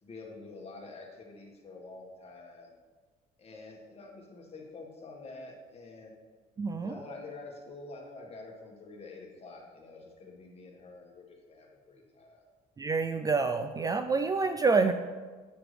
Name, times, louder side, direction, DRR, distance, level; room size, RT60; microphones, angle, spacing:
voice 1, 0.0-2.7 3.4-6.1 6.8-12.4, left 3 dB, 35° left, 0 dB, 1.7 m, -47 dB
voice 2, 6.6-6.9 12.8-14.9, right 4 dB, 20° right, 8 dB, 0.3 m, -27 dB
9.4 x 5.9 x 3.4 m, 1.4 s
cardioid pair, 110°, 17 cm